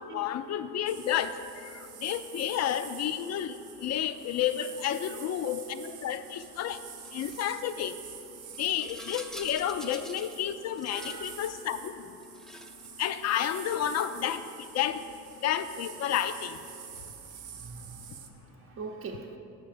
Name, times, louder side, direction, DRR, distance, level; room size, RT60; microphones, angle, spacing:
voice 1, 0.1-1.3 2.0-3.6 3.8-6.8 7.1-7.9 8.6-11.9 13.0-14.4 14.7-15.0 15.4-16.6, left 10 dB, 60° left, 12 dB, 0.4 m, -30 dB
sound 1, 0.9-18.3, right 8 dB, 85° right, 0.7 m, -47 dB
Rattle, 7.0-7.4 8.5-10.4 10.7-11.4 12.2-12.9 13.5-14.1, equal, ahead, 0.4 m, -47 dB
voice 2, 10.9-11.4 17.0-19.4, right 4 dB, 45° right, 2 dB, 0.7 m, -44 dB
8.6 x 3.6 x 6.6 m, 2.8 s
cardioid pair, 90°, 30 cm